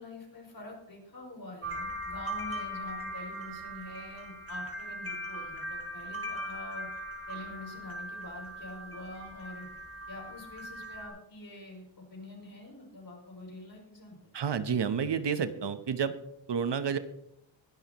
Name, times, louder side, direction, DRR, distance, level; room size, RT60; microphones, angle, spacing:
voice 1, 0.0-6.9 7.3-9.7 10.1-14.2, left 2 dB, 50° left, 0 dB, 6.1 m, -46 dB
sound 1, 1.6-11.1, equal, 30° right, 3.7 m, -39 dB
voice 2, 14.3-16.1 16.5-17.0, right 7 dB, 65° right, 11 dB, 0.9 m, -30 dB
21.5 x 12.5 x 3.0 m, 0.77 s
wide cardioid pair, 160°, 46 cm